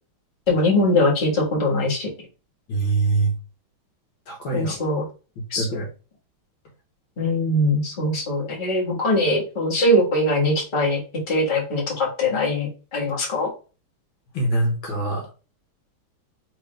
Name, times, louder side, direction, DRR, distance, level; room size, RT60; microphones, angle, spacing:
voice 1, 0.5-2.1 4.5-5.0 5.5-5.7 7.2-11.0 11.3-13.5, left 1 dB, 25° left, -4 dB, 1.4 m, -21 dB
voice 2, 2.7-3.3 4.3-4.7 5.6-5.9 14.3-15.3, right 3 dB, 70° left, 1 dB, 1.7 m, -23 dB
3.8 x 3.6 x 3.3 m, 0.35 s
omnidirectional pair, 2.3 m